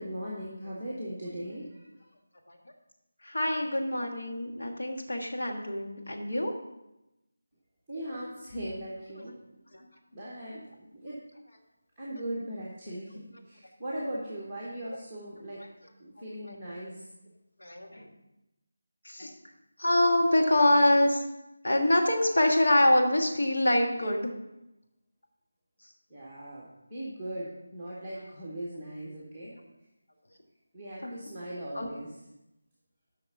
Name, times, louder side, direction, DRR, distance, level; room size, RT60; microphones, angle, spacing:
voice 1, 0.0-2.1 7.9-11.2 12.0-15.6 16.0-17.1 26.1-29.5 30.7-32.1, right 1 dB, ahead, -9 dB, 0.9 m, -39 dB
voice 2, 3.2-6.5 16.4-16.5 17.6-18.1 19.0-19.4 19.8-21.2 21.6-24.3 31.0-31.1 31.7-31.9, left 1 dB, 65° left, 2 dB, 1.6 m, -25 dB
7.7 x 5.8 x 5.7 m, 0.93 s
figure-of-eight pair, 180°, 0 cm